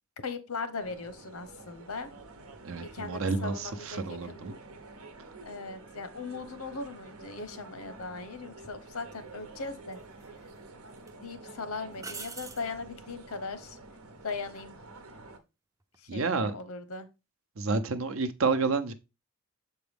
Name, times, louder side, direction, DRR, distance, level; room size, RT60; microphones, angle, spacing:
voice 1, 0.2-2.1 2.8-4.5 5.5-10.0 11.2-13.8 14.2-14.7 16.0-17.1, left 4 dB, 85° left, 0.9 m, -39 dB
sound 1, 0.8-15.4, right 3 dB, 85° right, 1.0 m, -49 dB
voice 2, 2.6-4.6 16.1-16.6 17.6-18.9, right 4 dB, 65° right, 0.7 m, -29 dB
sound 2, 8.6-8.8 9.9-10.6 11.0-11.1 12.0-12.7 15.8-16.2, right 4 dB, 15° right, 0.4 m, -43 dB
6.9 x 4.5 x 3.5 m
head